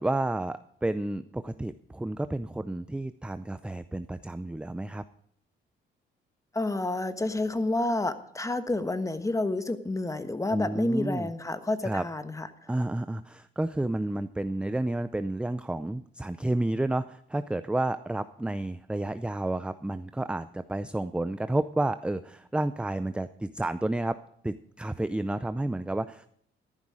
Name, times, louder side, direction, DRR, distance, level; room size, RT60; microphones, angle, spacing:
voice 1, 0.0-5.0 10.5-11.3 11.8-12.1 12.7-24.2 24.4-26.3, right 2 dB, 5° right, 12 dB, 0.5 m, -31 dB
voice 2, 6.5-12.5, left 2 dB, 15° left, 11 dB, 1.3 m, -29 dB
14.0 x 11.5 x 4.9 m, 0.65 s
cardioid pair, 90°, 20 cm